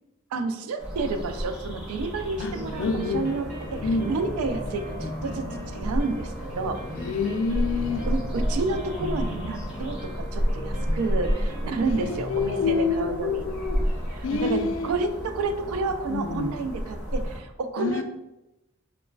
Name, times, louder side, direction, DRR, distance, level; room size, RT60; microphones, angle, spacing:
voice 1, 0.3-3.5 3.7-7.1 8.1-13.5 14.1-18.0, right 3 dB, 85° right, 8 dB, 0.3 m, -30 dB
sound 1, 0.8-17.4, equal, 5° right, 0.5 m, -32 dB
voice 2, 2.4-3.3 3.8-4.1 6.9-8.1 11.9-13.8 14.2-14.9 16.1-16.6 17.8-18.0, left 5 dB, 65° left, 6 dB, 0.3 m, -27 dB
sound 2, 2.5-15.4, equal, 35° right, 0.7 m, -38 dB
3.1 x 2.1 x 2.2 m, 0.95 s
head